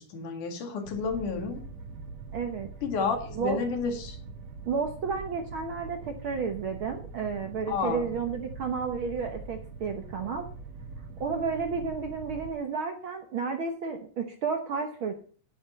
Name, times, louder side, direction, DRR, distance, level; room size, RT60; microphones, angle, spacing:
voice 1, 0.0-1.6 2.8-4.2 7.7-8.1, left 5 dB, 75° left, 5 dB, 3.5 m, -31 dB
sound 1, 0.8-12.5, right 4 dB, 80° right, 3.5 m, -43 dB
voice 2, 2.3-2.7 3.4-3.6 4.7-10.5 11.2-15.1, right 5 dB, 60° right, 5 dB, 1.4 m, -32 dB
10.0 x 9.8 x 4.2 m, 0.42 s
omnidirectional pair, 3.6 m